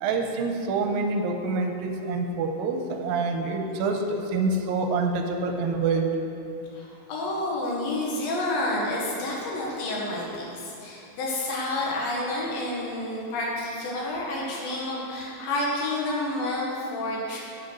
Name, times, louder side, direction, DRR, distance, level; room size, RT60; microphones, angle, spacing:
voice 1, 0.0-6.1, right 3 dB, 85° right, 4 dB, 2.4 m, -26 dB
voice 2, 6.7-17.4, left 1 dB, 80° left, -4 dB, 3.3 m, -29 dB
8.0 x 6.3 x 6.3 m, 2.7 s
omnidirectional pair, 4.1 m